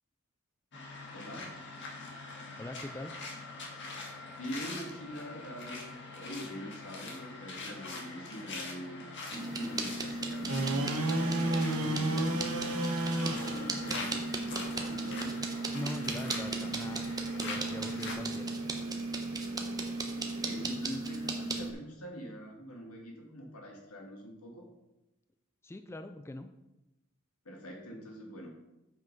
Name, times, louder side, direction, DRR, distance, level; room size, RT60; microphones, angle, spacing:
sound 1, 0.7-18.1, left 3 dB, 55° left, 1.7 m, -44 dB
voice 1, 1.0-1.5 4.4-12.8 13.2-14.2 14.5-15.4 20.4-24.7 27.5-28.5, equal, 85° left, 1 dB, 2.1 m, -44 dB
voice 2, 2.6-3.1 15.7-17.1 17.4-18.5 25.6-26.5, left 1 dB, 10° left, 9 dB, 0.3 m, -41 dB
sound 2, 9.3-21.7, right 2 dB, 20° right, 0.9 m, -36 dB
sound 3, 10.5-20.7, right 1 dB, 80° right, 1.3 m, -36 dB
7.5 x 5.9 x 5.3 m, 0.95 s
head